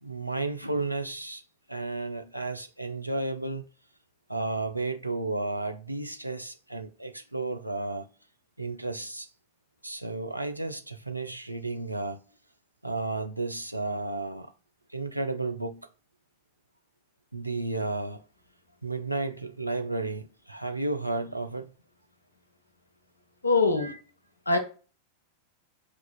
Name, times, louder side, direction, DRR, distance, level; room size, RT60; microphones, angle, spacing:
voice 1, 0.0-1.4 1.7-3.6 4.3-8.1 8.6-9.3 9.8-12.2 12.8-14.5 14.9-15.9 17.3-18.2 18.8-21.7 23.8-23.9, right 2 dB, 85° right, 0.4 m, -32 dB
voice 2, 23.4-23.9 24.5-24.6, left 3 dB, 80° left, 0.7 m, -22 dB
6.4 x 2.4 x 2.3 m
figure-of-eight pair, 90°, 0 cm